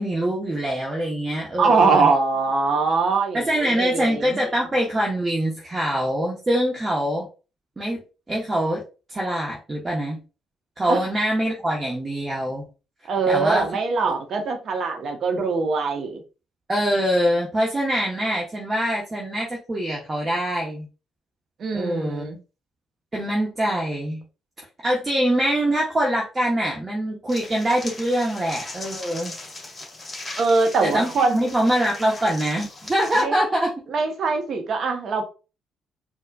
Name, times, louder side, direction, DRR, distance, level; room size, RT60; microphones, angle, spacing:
voice 1, 0.0-2.1 3.3-7.3 7.8-8.0 8.3-8.8 9.1-10.2 10.8-12.7 13.3-13.6 16.7-20.9 21.7-22.3 23.1-24.2 24.8-29.3 30.8-33.7, right 1 dB, 30° right, 1.0 m, -24 dB
voice 2, 1.6-4.4 10.9-11.0 13.1-16.2 21.6-22.4 30.4-31.5 33.2-33.4 33.9-35.2, right 4 dB, 55° right, 0.8 m, -22 dB
sound 1, 27.3-33.2, left 2 dB, 25° left, 1.6 m, -38 dB
4.4 x 2.3 x 2.2 m
hypercardioid pair, 45°, 0 cm